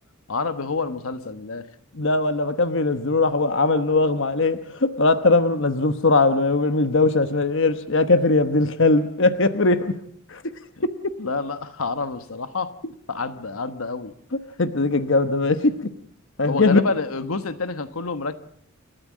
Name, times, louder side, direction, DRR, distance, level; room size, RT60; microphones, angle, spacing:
voice 1, 0.3-1.7 10.8-10.9 11.2-12.7 13.1-14.1 16.4-18.3, left 4 dB, 90° left, 10 dB, 1.2 m, -28 dB
voice 2, 2.0-9.9 10.3-10.4 10.8-11.1 14.6-15.9 16.4-16.8, left 3 dB, 60° left, 10 dB, 1.1 m, -20 dB
28.5 x 13.5 x 7.5 m, 0.67 s
head